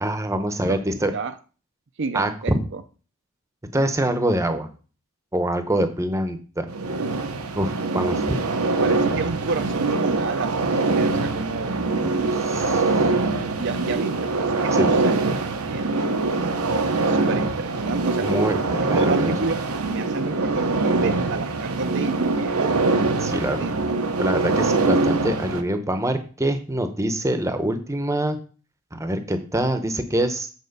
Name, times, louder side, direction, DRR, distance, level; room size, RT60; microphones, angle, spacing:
voice 1, 0.0-1.1 2.1-2.6 3.7-4.7 5.3-6.7 7.6-8.4 12.5-12.8 14.7-15.0 18.2-19.3 23.2-23.7 24.2-28.4 28.9-30.5, right 1 dB, 15° right, 8 dB, 0.8 m, -25 dB
voice 2, 2.0-2.8 7.6-7.8 8.8-12.5 13.6-15.9 17.1-18.3 18.8-19.6 19.9-23.8, right 4 dB, 55° right, 9 dB, 0.6 m, -30 dB
sound 1, 6.7-25.6, right 3 dB, 80° right, 1.0 m, -23 dB
8.0 x 4.4 x 6.6 m, 0.38 s
head